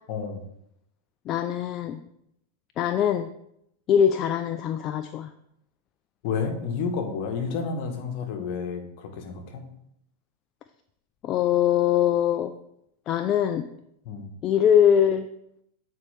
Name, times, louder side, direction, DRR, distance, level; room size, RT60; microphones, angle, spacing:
voice 1, 0.1-0.4 6.2-9.7 14.0-14.3, left 5 dB, 55° left, 5 dB, 1.1 m, -30 dB
voice 2, 1.3-2.0 2.8-3.3 3.9-5.3 11.2-12.5 13.1-13.7 14.4-15.3, left 9 dB, 40° left, 9 dB, 0.4 m, -22 dB
8.2 x 4.3 x 3.3 m, 0.77 s
hypercardioid pair, 105°, 0 cm